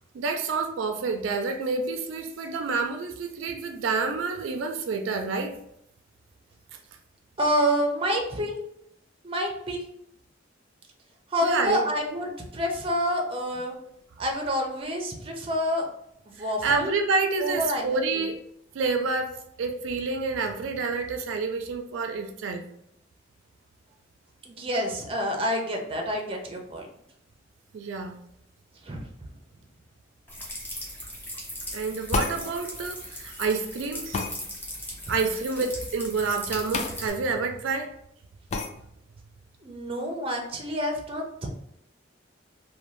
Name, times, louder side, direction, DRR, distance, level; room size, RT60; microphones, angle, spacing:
voice 1, 0.1-5.6 11.4-11.9 16.6-18.4 18.7-22.6 27.7-28.2 31.7-34.2 35.1-37.9, right 4 dB, 80° right, 5 dB, 0.3 m, -28 dB
voice 2, 7.4-8.6 9.2-9.8 11.3-13.7 14.2-15.9 16.4-16.9 17.4-17.9 18.1-18.3 24.5-26.9 28.8-29.1 39.6-41.5, equal, 30° right, 2 dB, 0.5 m, -28 dB
sound 1, 30.3-37.1, equal, 10° left, 0.7 m, -38 dB
sound 2, 32.1-32.4 34.1-34.3 36.7-37.0 37.3-37.4 38.5-38.7, left 3 dB, 35° left, 0.3 m, -28 dB
2.6 x 2.2 x 3.0 m, 0.76 s
head